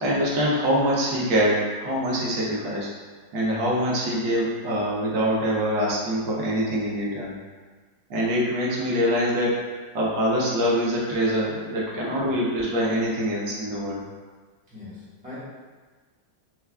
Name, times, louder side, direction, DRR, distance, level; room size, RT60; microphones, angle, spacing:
voice 1, 0.0-2.9 3.3-7.3 8.1-9.7 9.9-14.0, equal, 80° right, -5 dB, 1.4 m, -24 dB
voice 2, 14.7-15.4, left 3 dB, 5° right, -11 dB, 0.8 m, -42 dB
4.4 x 2.4 x 2.2 m, 1.4 s
omnidirectional pair, 2.1 m